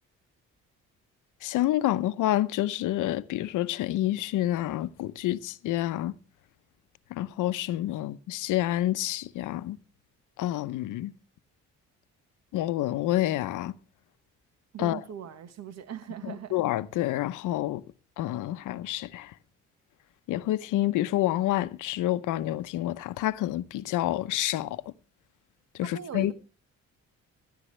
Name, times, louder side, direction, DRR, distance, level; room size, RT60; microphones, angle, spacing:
voice 1, 1.4-6.1 7.1-9.8 10.4-11.1 12.5-13.8 14.8-15.0 16.2-17.8 18.2-19.3 20.3-24.8 25.7-26.3, left 14 dB, 85° left, 0.8 m, -28 dB
voice 2, 14.7-16.6 25.8-26.3, right 9 dB, 60° right, 1.3 m, -40 dB
16.5 x 12.5 x 3.2 m
cardioid pair, 90°, 30 cm